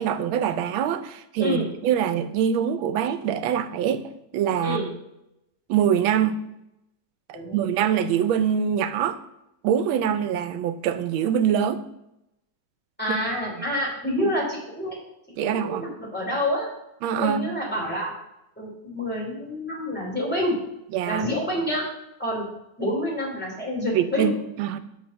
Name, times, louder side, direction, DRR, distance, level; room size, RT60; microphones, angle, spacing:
voice 1, 0.0-4.0 4.3-4.8 5.7-6.4 7.3-9.2 9.6-11.8 13.1-13.2 15.4-15.8 17.0-17.5 20.9-21.2 23.9-24.8, right 9 dB, 85° right, 11 dB, 1.4 m, -24 dB
voice 2, 7.3-7.7 13.0-14.9 15.4-16.7 17.2-18.1 18.6-20.6 21.1-21.8 22.2-22.4 22.8-24.3, left 1 dB, 5° left, -4 dB, 2.8 m, -27 dB
7.2 x 4.2 x 6.3 m, 0.85 s
omnidirectional pair, 2.2 m